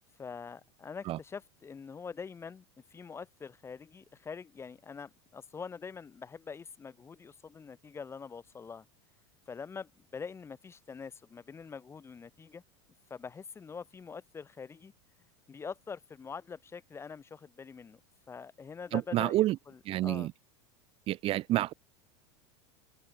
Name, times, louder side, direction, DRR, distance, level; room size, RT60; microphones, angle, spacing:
voice 1, 0.2-2.6 2.9-8.9 9.5-12.6 13.1-14.9 15.5-18.0 18.3-20.3, left 5 dB, 15° left, 1.8 m, -44 dB
voice 2, 18.9-19.6 19.8-20.3 21.1-21.7, right 15 dB, 40° right, 1.1 m, -28 dB
supercardioid pair, 140°, 15 cm